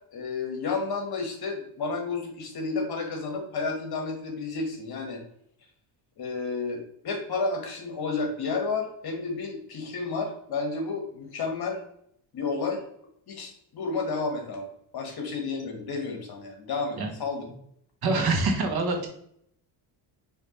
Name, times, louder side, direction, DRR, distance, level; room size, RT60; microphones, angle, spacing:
voice 1, 0.1-5.2 6.2-11.8 12.3-12.8 13.3-17.4, left 4 dB, 50° left, 2 dB, 1.3 m, -31 dB
voice 2, 18.0-19.1, right 3 dB, 50° right, 2 dB, 1.1 m, -25 dB
5.0 x 2.9 x 3.0 m, 0.70 s
cardioid pair, 110°, 49 cm